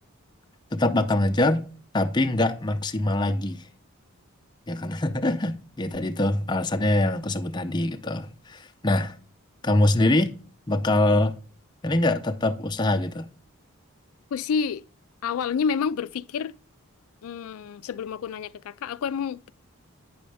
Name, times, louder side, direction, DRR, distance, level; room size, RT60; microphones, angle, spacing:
voice 1, 0.7-1.6 1.9-3.6 4.7-9.1 9.6-10.3 10.7-11.4 11.8-13.3, left 1 dB, 20° left, 0.6 m, -24 dB
voice 2, 14.3-14.8 15.2-16.5 17.2-19.5, left 6 dB, 80° left, 0.3 m, -29 dB
9.3 x 6.3 x 3.3 m
head